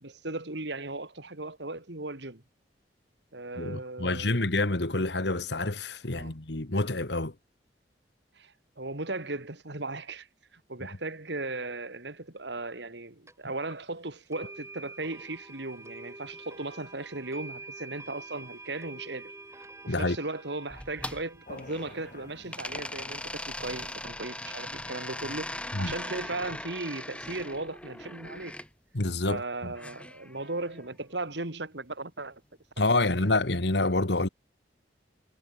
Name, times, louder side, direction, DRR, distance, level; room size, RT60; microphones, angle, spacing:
voice 1, 0.0-2.4 3.3-4.5 6.2-6.3 8.4-10.3 10.5-19.3 19.8-28.6 29.3-32.4 33.2-33.3, right 2 dB, 70° right, 2.5 m, -37 dB
voice 2, 3.6-7.3 19.9-20.2 25.7-25.9 28.9-29.7 32.8-34.3, left 2 dB, 70° left, 1.9 m, -27 dB
sound 1, 13.3-13.4 14.3-24.4, right 2 dB, 15° right, 6.6 m, -48 dB
sound 2, 20.7-22.1 22.5-28.7 29.8-30.9, left 1 dB, 5° left, 3.8 m, -40 dB
sound 3, 21.4-26.3, left 2 dB, 45° left, 3.8 m, -50 dB
head